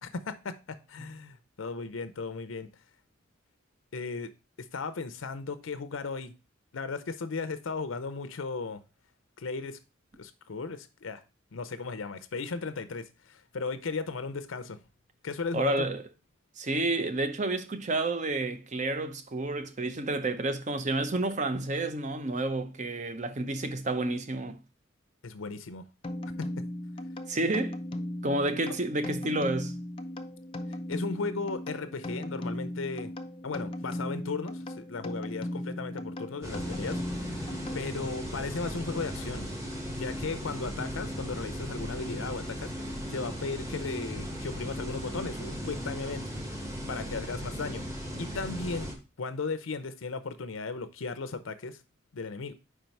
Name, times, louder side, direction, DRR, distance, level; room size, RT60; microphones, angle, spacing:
voice 1, 0.0-2.7 3.9-4.3 4.6-6.3 6.7-8.8 9.4-9.8 10.2-11.2 11.5-14.8 15.2-15.9 25.2-25.9 26.4-26.6 30.9-33.1 33.4-37.5 37.7-39.5 39.9-46.3 46.9-47.8 48.2-48.9 49.2-51.8 52.1-52.5, left 4 dB, 85° left, 0.6 m, -36 dB
voice 2, 15.5-16.0 16.6-24.6 27.3-27.8 28.2-29.8, right 2 dB, 35° right, 0.7 m, -30 dB
sound 1, 26.0-38.2, left 1 dB, 30° left, 0.5 m, -37 dB
sound 2, 36.4-48.9, equal, 15° right, 1.2 m, -37 dB
5.0 x 4.5 x 5.2 m
head